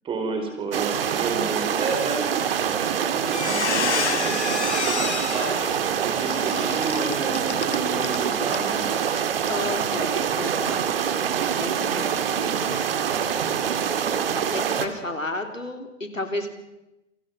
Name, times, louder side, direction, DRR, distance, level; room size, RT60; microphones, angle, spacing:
voice 1, 0.0-2.3 2.5-5.5 6.2-8.9 14.1-14.6, right 3 dB, 15° right, 4 dB, 4.8 m, -31 dB
sound 1, 0.7-14.9, right 8 dB, 50° right, 2.2 m, -25 dB
Squeak, 2.7-2.9 3.2-8.2 8.5-8.7 9.1-9.2, left 7 dB, 60° left, 1.7 m, -30 dB
voice 2, 9.5-11.3 11.6-13.3 14.3-16.5, left 2 dB, 80° left, 5 dB, 3.7 m, -33 dB
28.5 x 24.5 x 5.9 m, 0.94 s
figure-of-eight pair, 120°, 38 cm